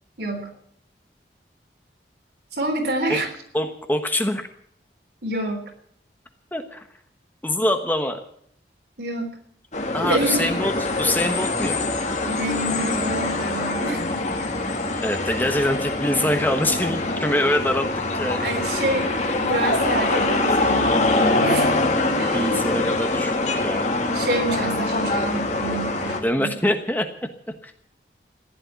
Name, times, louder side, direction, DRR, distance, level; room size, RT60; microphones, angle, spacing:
voice 1, 0.2-0.5 2.5-3.3 5.2-5.6 9.0-9.4 10.0-10.6 12.2-14.5 18.3-22.8 24.1-26.5, right 1 dB, 65° right, 4 dB, 3.7 m, -28 dB
voice 2, 3.5-4.5 6.5-6.9 7.4-8.2 9.9-11.8 15.0-18.7 21.3-21.6 22.3-23.9 26.2-27.1 27.6-27.7, left 1 dB, 10° left, 6 dB, 1.2 m, -24 dB
sound 1, 9.7-26.2, left 2 dB, 40° left, 2.3 m, -24 dB
15.0 x 11.0 x 8.2 m, 0.67 s
head